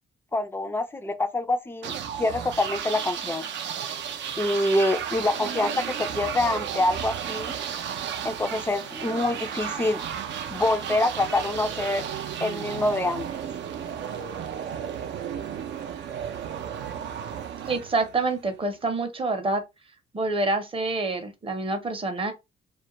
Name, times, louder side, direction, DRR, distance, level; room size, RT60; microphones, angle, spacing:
voice 1, 0.3-1.9 2.2-3.5 4.4-7.6 8.2-10.0 10.5-12.0 12.4-13.3, left 2 dB, 10° left, 0.4 m, -26 dB
sound 1, 1.8-18.6, right 8 dB, 65° right, 0.4 m, -33 dB
voice 2, 17.7-19.6 20.1-22.3, right 3 dB, 25° right, 0.7 m, -27 dB
2.3 x 2.1 x 2.8 m
cardioid pair, 90°, 20 cm